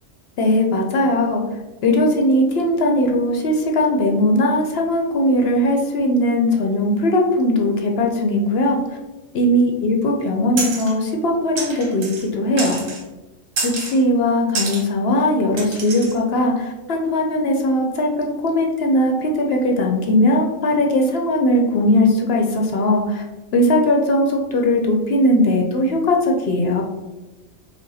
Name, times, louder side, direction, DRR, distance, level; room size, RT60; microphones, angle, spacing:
voice 1, 0.4-1.4 1.8-8.8 9.3-12.8 13.6-23.2 23.5-26.8, left 1 dB, 60° left, 1 dB, 0.7 m, -19 dB
sound 1, 10.6-10.9 11.6-12.3 12.6-13.0 13.6-14.0 14.5-14.8 15.6-16.2, right 3 dB, 75° right, 1.3 m, -27 dB
5.0 x 2.1 x 4.0 m, 1.1 s
omnidirectional pair, 1.4 m